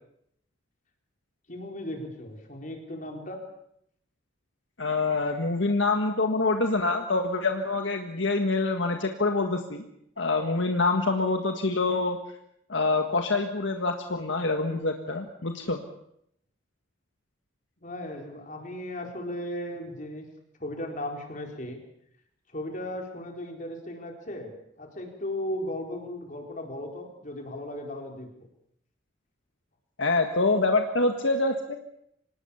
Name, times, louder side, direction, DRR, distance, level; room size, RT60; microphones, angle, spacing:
voice 1, 1.5-3.4 17.8-20.3 20.6-21.8 22.5-28.3, left 1 dB, 40° left, 3 dB, 4.5 m, -36 dB
voice 2, 4.8-9.8 10.2-12.2 12.7-15.8 30.0-31.8, left 3 dB, 70° left, 5 dB, 1.7 m, -26 dB
25.5 x 19.5 x 7.2 m, 0.74 s
head